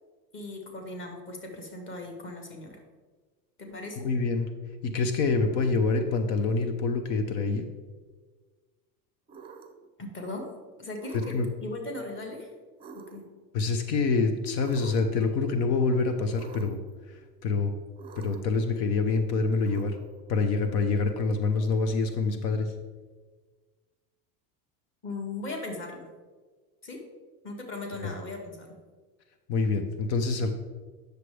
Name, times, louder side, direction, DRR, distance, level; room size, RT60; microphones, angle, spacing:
voice 1, 0.3-2.8 3.6-4.0 10.0-10.5 10.8-11.3 11.6-12.5 12.9-13.2 25.0-26.1 26.8-27.0 27.4-28.7, left 2 dB, 25° left, 2 dB, 1.4 m, -38 dB
voice 2, 4.0-4.5 4.8-7.7 11.1-11.5 13.5-16.8 17.1-17.7 18.2-20.0 20.3-22.7 28.0-28.1 29.5-30.5, left 4 dB, 75° left, 7 dB, 0.9 m, -26 dB
sound 1, 9.3-9.9 11.0-11.7 12.8-13.5 14.6-15.2 16.3-16.9 18.0-18.6 19.6-20.4, right 5 dB, 10° right, 0.5 m, -47 dB
9.3 x 6.6 x 3.3 m, 1.4 s
supercardioid pair, 140°, 48 cm